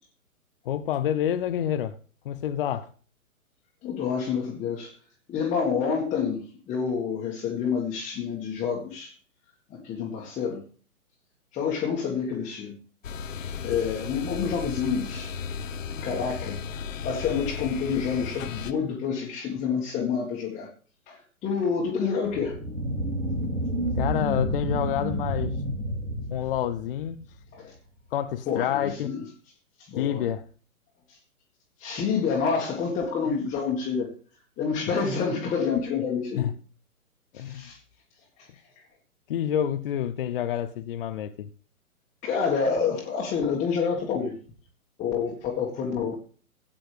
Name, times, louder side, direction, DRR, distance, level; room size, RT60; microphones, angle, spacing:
voice 1, 0.7-1.9 2.2-2.9 24.0-25.5 26.3-27.2 28.1-29.1 30.0-30.4 36.4-36.5 37.3-37.6 39.3-41.5, left 10 dB, 40° left, 0.7 m, -28 dB
voice 2, 3.8-4.9 5.3-9.1 9.7-10.7 11.5-12.8 13.6-15.3 16.0-16.6 17.0-20.7 21.1-22.6 27.5-27.7 28.5-29.2 29.8-30.2 31.1-31.2 31.8-34.1 34.6-36.5 37.3-37.8 38.4-38.5 42.2-44.4 45.0-46.2, left 6 dB, 15° left, 1.7 m, -28 dB
sound 1, 13.0-18.7, left 6 dB, 60° left, 1.1 m, -35 dB
sound 2, 22.2-27.2, equal, 85° right, 5.4 m, -30 dB
17.0 x 8.7 x 3.4 m
figure-of-eight pair, 125°, 43 cm